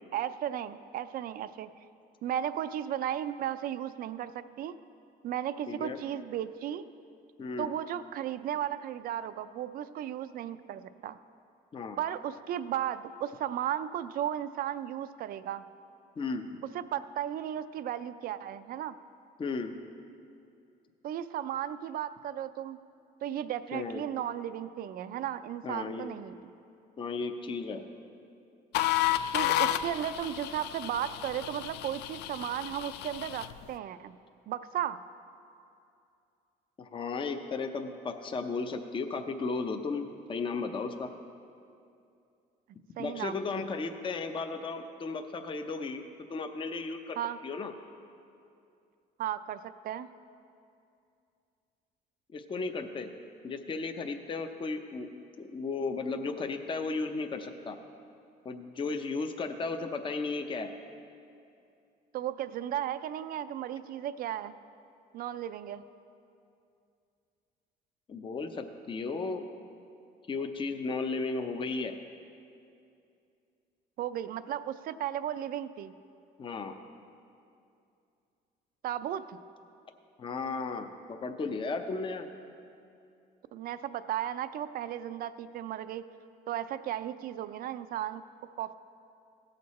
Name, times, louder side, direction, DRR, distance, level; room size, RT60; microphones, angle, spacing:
voice 1, 0.1-1.7 2.2-4.7 5.2-6.8 7.6-11.2 12.0-15.6 16.7-19.0 21.0-22.8 23.2-26.5 29.3-34.2 34.5-35.0 43.0-43.4 47.2-47.4 49.2-50.1 62.1-64.5 65.1-65.8 74.0-75.9 78.8-79.4 83.5-86.1 86.5-88.2 88.6-88.7, right 10 dB, 60° right, 13 dB, 0.4 m, -35 dB
voice 2, 5.7-6.0 7.4-7.7 11.7-12.0 16.2-16.5 19.4-19.7 23.7-24.0 25.6-26.1 27.0-27.8 36.8-41.1 43.0-46.0 46.3-47.2 47.4-47.7 52.3-53.1 53.4-55.1 55.4-57.8 58.4-60.7 68.1-69.4 70.3-71.9 76.4-76.8 80.2-82.3, left 4 dB, 30° left, 6 dB, 0.6 m, -35 dB
sound 1, 28.7-33.6, left 13 dB, 80° left, 0.4 m, -31 dB
16.5 x 6.6 x 4.2 m, 2.5 s
cardioid pair, 110°, 17 cm